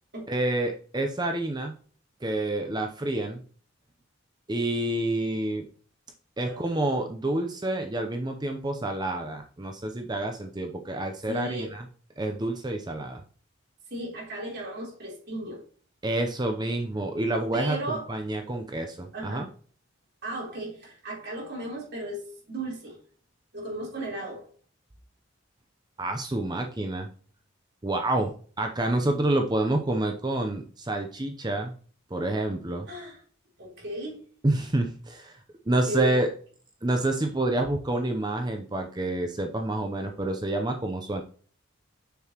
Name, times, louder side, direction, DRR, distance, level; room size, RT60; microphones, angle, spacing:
voice 1, 0.3-1.8 2.2-3.4 4.5-5.6 6.4-11.8 12.2-13.2 16.0-19.5 26.0-27.1 27.8-31.7 32.1-32.9 34.4-36.3 36.8-41.2, right 1 dB, 20° right, 4 dB, 0.6 m, -28 dB
voice 2, 6.5-6.8 11.3-11.7 13.9-15.6 17.5-18.1 19.1-19.5 20.2-23.0 23.5-24.5 30.0-30.1 32.9-33.2 33.6-34.2 35.9-36.2, right 2 dB, 55° right, -2 dB, 3.6 m, -35 dB
6.9 x 6.8 x 2.9 m, 0.43 s
head